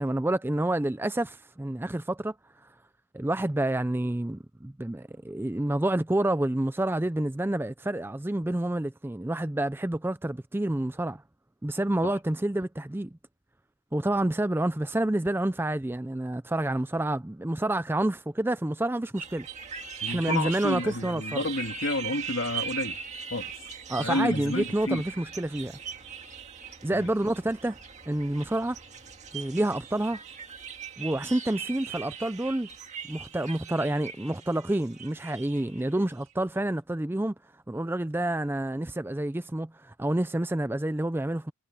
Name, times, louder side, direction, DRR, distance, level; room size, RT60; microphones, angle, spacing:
voice 1, 0.0-2.3 3.1-11.2 11.6-13.1 13.9-19.5 20.1-21.4 23.9-25.7 26.8-27.8 28.1-28.8 29.3-30.2 31.0-32.7 33.1-37.3 37.7-41.5, right 1 dB, 10° right, 0.4 m, -28 dB
sound 1, 19.2-36.1, right 7 dB, 30° right, 2.0 m, -40 dB
voice 2, 20.0-23.0 23.3-23.5 24.0-25.0 26.9-27.1, left 2 dB, 60° left, 2.8 m, -30 dB
head